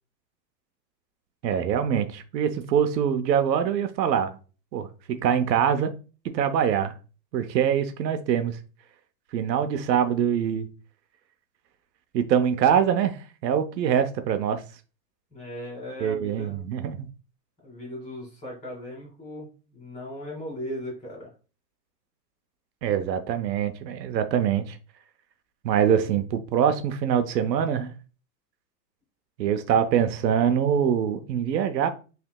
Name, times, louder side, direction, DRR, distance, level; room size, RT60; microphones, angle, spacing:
voice 1, 1.4-4.4 4.7-5.9 6.3-6.9 7.3-8.6 9.3-10.7 12.1-13.2 13.4-14.6 16.0-17.1 22.8-24.8 25.6-27.9 29.4-31.9, right 8 dB, 80° right, 0.8 m, -24 dB
voice 2, 15.3-16.7 17.6-21.3, equal, 15° left, 2.3 m, -38 dB
5.7 x 3.4 x 2.3 m
supercardioid pair, 155°, 50 cm